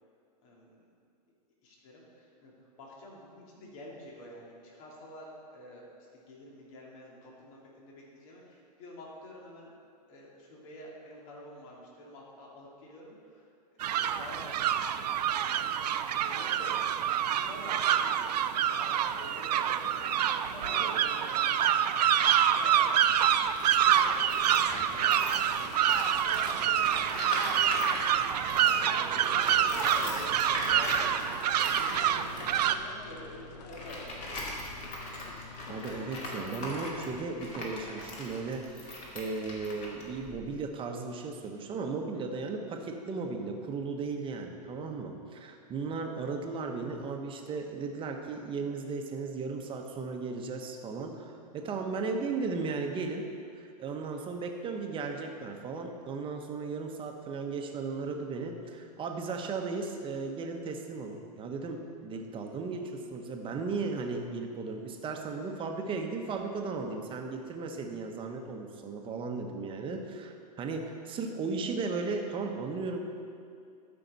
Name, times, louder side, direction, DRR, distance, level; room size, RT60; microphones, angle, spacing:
voice 1, 0.4-0.9 1.6-2.5 2.8-9.7 10.1-13.5 14.0-14.6 15.0-22.1 22.4-23.3 23.7-24.6 24.9-25.2 26.0-34.3, left 1 dB, 55° left, -3 dB, 2.4 m, -48 dB
sound 1, 13.8-32.8, right 10 dB, 80° right, 0.5 m, -27 dB
Tools, 23.1-28.9 29.2-40.7, left 1 dB, 35° left, 2.2 m, -40 dB
sound 2, 24.6-37.4, left 5 dB, 75° left, 0.8 m, -50 dB
voice 2, 35.7-53.3 53.6-73.1, right 4 dB, 25° right, 3 dB, 1.0 m, -36 dB
13.0 x 5.8 x 4.1 m, 2.4 s
hypercardioid pair, 125°, 21 cm